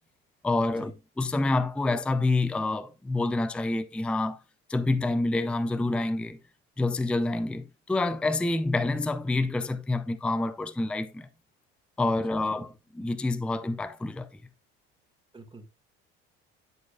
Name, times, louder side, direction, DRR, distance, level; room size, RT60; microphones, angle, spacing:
voice 1, 0.4-4.4 4.7-6.4 6.8-11.3 12.0-14.3, left 2 dB, 5° left, 0.5 m, -27 dB
voice 2, 12.2-12.7 15.3-15.7, right 3 dB, 15° right, 1.9 m, -47 dB
10.5 x 4.6 x 2.4 m
hypercardioid pair, 75°, 32 cm